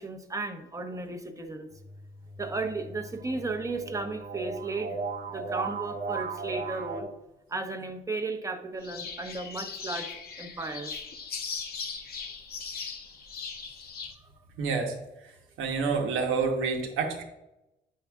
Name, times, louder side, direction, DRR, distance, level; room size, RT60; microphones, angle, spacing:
voice 1, 0.0-1.7 2.4-5.0 5.3-7.1 7.5-10.9, right 3 dB, 15° right, 6 dB, 0.8 m, -34 dB
sound 1, 1.7-7.0, right 4 dB, 45° right, 1.1 m, -37 dB
sound 2, 8.8-14.2, left 5 dB, 50° left, 0.8 m, -39 dB
voice 2, 14.6-14.9 15.6-17.2, right 5 dB, 90° right, 2 dB, 1.1 m, -28 dB
8.9 x 5.6 x 2.3 m, 0.93 s
cardioid pair, 90°, 20 cm